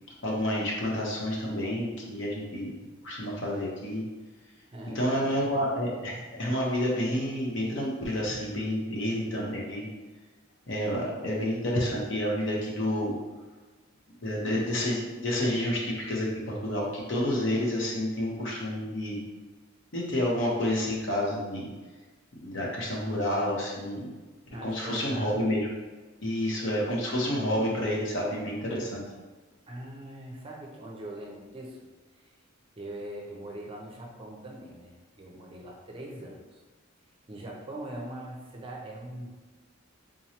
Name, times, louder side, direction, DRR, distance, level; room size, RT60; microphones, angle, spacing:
voice 1, 0.2-2.8 3.0-4.0 4.9-9.9 10.7-13.1 14.2-19.2 19.9-21.7 22.3-24.0 24.6-25.7 26.2-29.0, left 1 dB, 65° left, -3 dB, 0.9 m, -29 dB
voice 2, 4.7-5.6 24.5-25.4 29.7-31.8 32.2-32.3 32.8-36.6 37.3-39.4, right 1 dB, 25° right, -1 dB, 0.5 m, -42 dB
3.7 x 3.0 x 2.8 m, 1.3 s
head